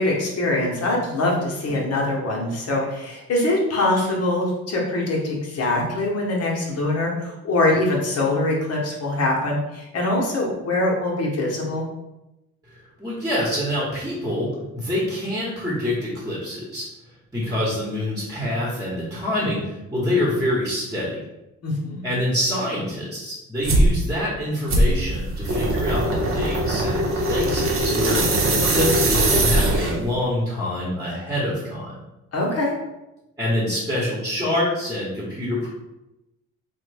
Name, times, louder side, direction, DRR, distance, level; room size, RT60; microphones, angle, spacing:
voice 1, 0.0-11.8 21.6-22.1 32.3-32.7, left 2 dB, 55° left, -2 dB, 0.9 m, -23 dB
voice 2, 12.6-16.9 17.3-21.2 22.0-28.2 28.6-31.9 33.4-35.7, left 1 dB, 10° right, -6 dB, 1.0 m, -26 dB
sound 1, 23.6-23.9 24.7-30.1, right 1 dB, 45° right, 0.8 m, -20 dB
3.1 x 2.2 x 3.3 m, 0.95 s
cardioid pair, 90°, 30 cm